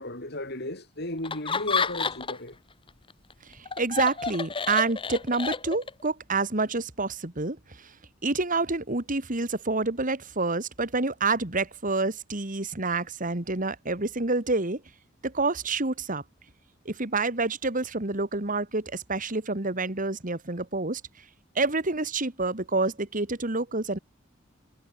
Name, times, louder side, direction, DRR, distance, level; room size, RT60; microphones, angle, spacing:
voice 1, 0.0-2.6, left 1 dB, 55° left, 8.0 m, -35 dB
Laughter, 1.2-2.5 2.9-6.1, left 5 dB, 25° left, 1.2 m, -30 dB
voice 2, 3.5-7.9 8.2-14.8 15.2-16.2 16.9-21.0 21.6-24.0, right 3 dB, 40° right, 2.2 m, -28 dB
head